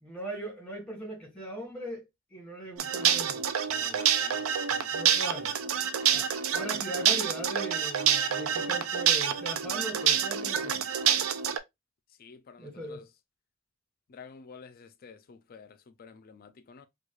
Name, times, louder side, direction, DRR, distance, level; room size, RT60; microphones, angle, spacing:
voice 1, 0.0-4.1 4.7-5.5 6.1-6.2 6.5-10.8 12.6-13.1, right 1 dB, 5° left, 1.6 m, -40 dB
sound 1, 2.8-11.6, right 8 dB, 85° right, 0.4 m, -27 dB
voice 2, 3.9-4.5 12.2-13.0 14.1-16.9, left 5 dB, 45° left, 0.4 m, -50 dB
4.6 x 2.3 x 2.3 m
head